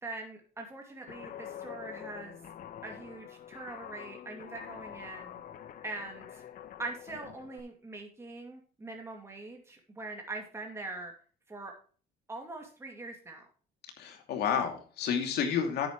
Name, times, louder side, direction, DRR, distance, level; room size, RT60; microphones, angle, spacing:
voice 1, 0.0-2.4 2.8-5.4 5.8-6.4 6.8-11.1 11.5-11.7 12.3-13.5, right 2 dB, 15° right, 1 dB, 2.4 m, -42 dB
Guitar, 1.1-7.6, left 10 dB, 55° left, 1.1 m, -46 dB
voice 2, 14.0-15.9, left 7 dB, 75° left, 4 dB, 2.7 m, -30 dB
10.0 x 8.7 x 3.1 m, 0.40 s
cardioid pair, 110°, 17 cm